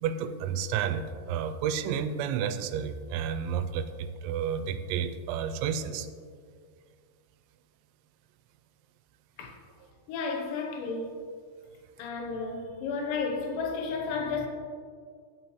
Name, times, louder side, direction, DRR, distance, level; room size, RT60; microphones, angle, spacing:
voice 1, 0.0-6.1, right 8 dB, 90° right, 2.9 m, -31 dB
voice 2, 10.1-11.2 12.0-14.5, left 4 dB, 80° left, 3.3 m, -32 dB
15.0 x 6.1 x 3.1 m
omnidirectional pair, 5.2 m